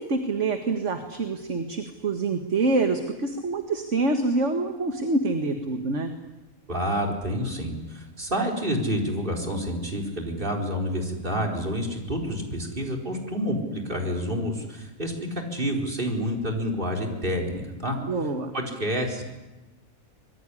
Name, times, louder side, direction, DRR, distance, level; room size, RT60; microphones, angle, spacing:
voice 1, 0.0-6.1 18.0-18.5, right 3 dB, 55° right, 6 dB, 2.0 m, -26 dB
voice 2, 6.7-18.0 18.5-19.2, equal, 35° right, 1 dB, 4.8 m, -28 dB
26.0 x 21.5 x 10.0 m, 1.1 s
omnidirectional pair, 1.5 m